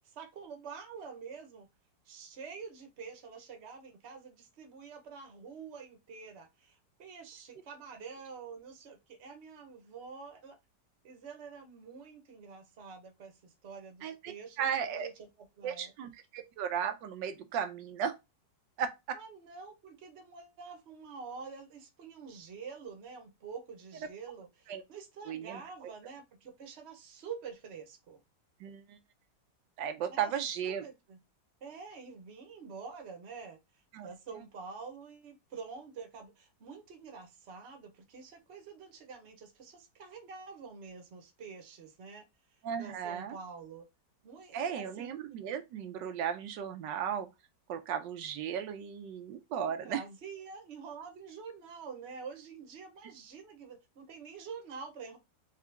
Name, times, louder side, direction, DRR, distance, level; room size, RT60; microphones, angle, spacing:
voice 1, 0.0-1.7 2.1-10.6 11.0-15.9 19.1-28.2 30.1-30.3 30.6-31.2 31.6-33.6 34.0-42.2 42.8-43.8 44.2-45.1 49.6-55.2, right 5 dB, 45° right, 1.1 m, -47 dB
voice 2, 14.0-14.3 14.6-15.1 15.6-18.1 18.8-19.2 24.7-24.8 25.3-25.9 28.6-29.0 29.8-30.8 33.9-34.1 42.6-43.4 44.5-47.3 47.7-50.0, right 8 dB, 80° right, 1.3 m, -35 dB
3.7 x 3.7 x 3.3 m
omnidirectional pair, 1.9 m